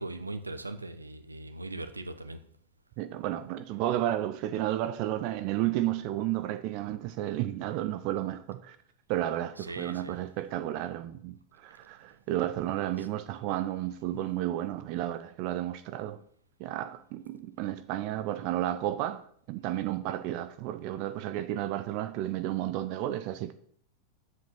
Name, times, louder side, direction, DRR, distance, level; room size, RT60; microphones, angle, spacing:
voice 1, 0.0-2.4 9.6-10.2, right 2 dB, 80° right, 0.9 m, -39 dB
voice 2, 3.0-8.8 9.1-16.2 16.6-23.5, right 13 dB, 45° right, 0.6 m, -32 dB
8.4 x 7.6 x 6.3 m
figure-of-eight pair, 90°, 0 cm